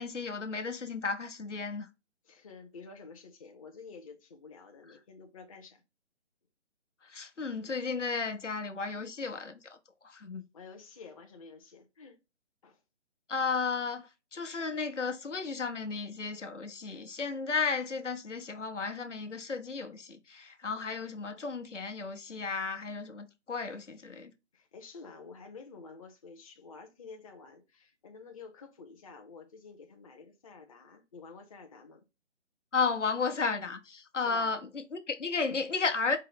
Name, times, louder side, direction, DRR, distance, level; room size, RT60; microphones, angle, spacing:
voice 1, 0.0-1.9 7.1-9.8 10.0-10.4 13.3-24.3 32.7-36.2, left 4 dB, 90° left, 1.0 m, -34 dB
voice 2, 2.2-5.8 10.5-12.2 12.6-12.8 24.5-32.0 34.2-34.6, left 4 dB, 30° left, 0.6 m, -50 dB
4.7 x 2.0 x 4.7 m
figure-of-eight pair, 145°, 36 cm